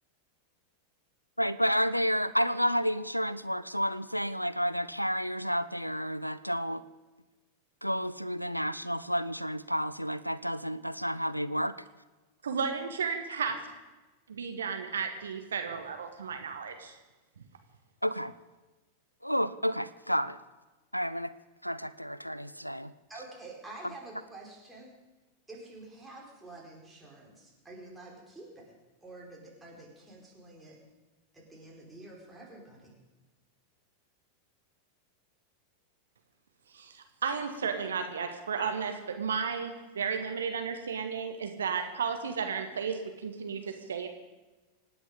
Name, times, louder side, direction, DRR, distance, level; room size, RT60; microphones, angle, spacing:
voice 1, 1.4-6.8 7.8-11.7 18.0-18.3 19.2-20.4 20.9-21.3 21.6-22.9, equal, 90° left, 17 dB, 0.5 m, -30 dB
voice 2, 12.4-13.6 14.3-17.0 17.4-17.5 36.7-44.1, right 6 dB, 70° right, 6 dB, 1.5 m, -33 dB
voice 3, 23.1-24.9 25.5-28.7 29.0-30.8 31.3-32.9, right 2 dB, 10° right, -2 dB, 4.9 m, -48 dB
25.5 x 9.8 x 5.2 m, 1.2 s
figure-of-eight pair, 90°, 0 cm